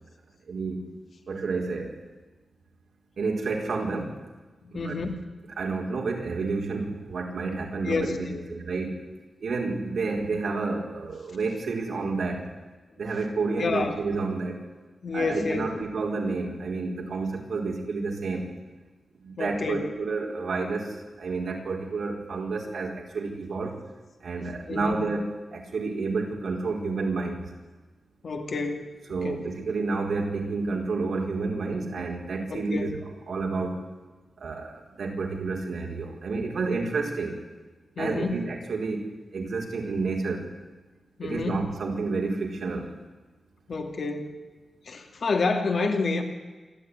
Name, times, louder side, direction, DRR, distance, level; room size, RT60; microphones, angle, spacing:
voice 1, 0.5-0.8 1.3-1.9 3.2-4.1 4.7-5.0 5.6-8.9 9.4-12.4 13.0-14.6 15.1-18.5 19.2-23.8 24.2-27.4 29.1-33.0 33.3-33.8 34.4-37.3 38.0-39.1 39.3-40.5 41.2-42.9, right 3 dB, 70° right, 1 dB, 4.6 m, -30 dB
voice 2, 4.7-5.1 7.8-8.5 13.6-14.0 15.0-15.8 19.4-19.9 24.7-25.0 28.2-28.9 29.2-29.4 32.5-32.9 38.0-38.3 41.2-41.6 43.7-44.4 44.9-46.2, left 4 dB, 60° left, 4 dB, 2.6 m, -29 dB
27.0 x 12.5 x 9.8 m, 1.2 s
wide cardioid pair, 160°, 0 cm